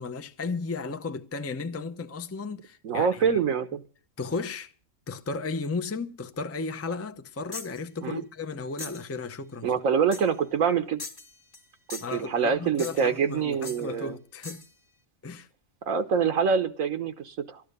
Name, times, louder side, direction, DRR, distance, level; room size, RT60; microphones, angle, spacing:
voice 1, 0.0-3.4 4.2-4.7 5.1-9.7 12.0-14.6 15.2-15.5, left 4 dB, 15° left, 0.5 m, -34 dB
voice 2, 2.8-3.8 8.0-8.2 9.6-11.0 11.9-14.2 15.9-17.6, right 6 dB, 75° right, 1.4 m, -25 dB
sound 1, 7.5-7.8 8.8-9.1 10.1-10.4 11.0-11.7 11.9-12.2 12.8-13.2 13.6-13.9 14.4-14.7, left 3 dB, 45° left, 1.4 m, -41 dB
13.5 x 11.5 x 6.7 m
omnidirectional pair, 1.4 m